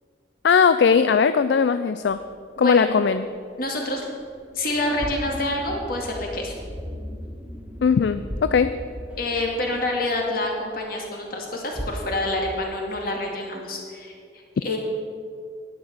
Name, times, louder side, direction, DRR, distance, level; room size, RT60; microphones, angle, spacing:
voice 1, 0.4-2.2 2.6-3.3 7.8-8.8, left 6 dB, 70° left, 11 dB, 0.4 m, -19 dB
sound 1, 2.0-3.6 4.0-4.3 4.7-6.6 6.9-7.6 7.8-7.9 8.2-9.2 9.5-9.6 10.2-10.3 11.3-11.4 11.7-12.7, equal, 20° left, 3.3 m, -37 dB
voice 2, 2.6-3.0 3.6-4.1 4.5-6.6 9.2-14.8, left 1 dB, 55° left, 0 dB, 2.2 m, -27 dB
sound 2, 3.3-11.8, equal, 5° right, 1.3 m, -41 dB
11.0 x 9.4 x 6.4 m, 2.2 s
head